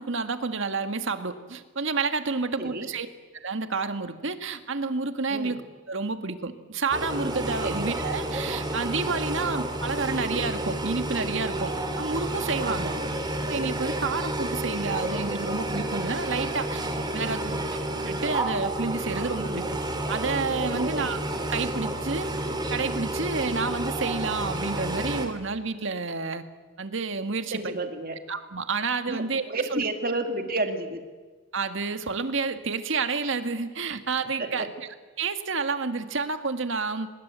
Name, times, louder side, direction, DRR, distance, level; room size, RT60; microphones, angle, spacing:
voice 1, 0.0-3.1 3.4-5.6 5.9-12.9 13.5-16.8 17.1-17.4 17.9-19.7 20.1-21.2 21.5-22.3 22.7-26.4 26.8-27.7 28.3-29.4 29.7-29.8 31.5-34.7 35.2-37.1, right 4 dB, 60° right, 9 dB, 1.7 m, -29 dB
voice 2, 5.3-5.6 7.6-7.8 12.6-13.1 17.1-17.6 20.7-21.1 27.5-28.2 29.1-31.0 34.4-34.7, right 2 dB, 45° right, 6 dB, 2.4 m, -31 dB
sound 1, 6.9-25.3, right 1 dB, 20° right, 2.7 m, -30 dB
24.5 x 21.0 x 8.1 m, 1.4 s
head